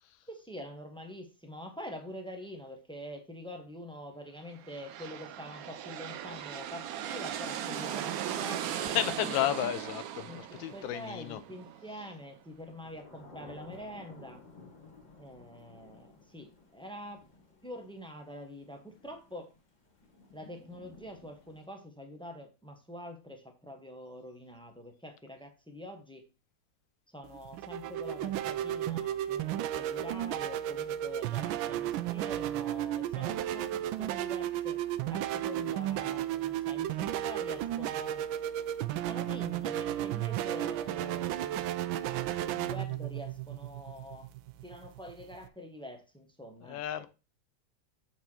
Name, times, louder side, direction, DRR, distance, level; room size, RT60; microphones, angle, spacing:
voice 1, 0.3-9.6 10.2-14.4 15.2-17.2 17.6-19.5 20.3-26.2 27.1-34.8 35.1-38.2 39.1-42.0 42.4-44.3 44.6-47.1, equal, 5° left, 0.5 m, -45 dB
sound 1, 4.5-12.2, right 10 dB, 70° right, 0.9 m, -38 dB
Thunder / Rain, 6.2-21.7, left 2 dB, 30° left, 1.1 m, -56 dB
voice 2, 8.9-11.4 46.6-47.1, left 12 dB, 85° left, 1.4 m, -33 dB
sound 2, 27.2-45.5, right 12 dB, 90° right, 1.3 m, -34 dB
8.0 x 4.2 x 4.3 m
omnidirectional pair, 2.1 m